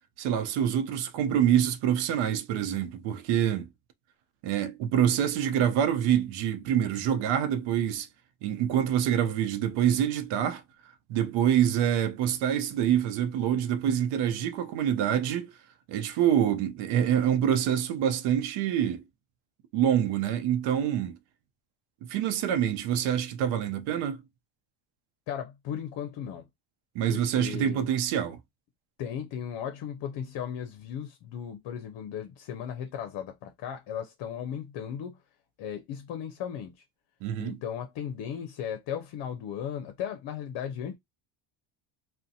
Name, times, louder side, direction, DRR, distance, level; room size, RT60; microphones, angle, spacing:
voice 1, 0.2-3.7 4.4-8.1 8.4-10.6 11.1-15.5 15.9-19.0 19.7-21.2 22.1-24.2 26.9-28.4 37.2-37.6, right 9 dB, 80° right, 0.7 m, -26 dB
voice 2, 25.3-26.5 27.1-27.9 29.0-35.2 35.6-36.8 37.4-41.0, left 9 dB, 60° left, 0.6 m, -36 dB
2.5 x 2.2 x 2.6 m
cardioid pair, 120°, 48 cm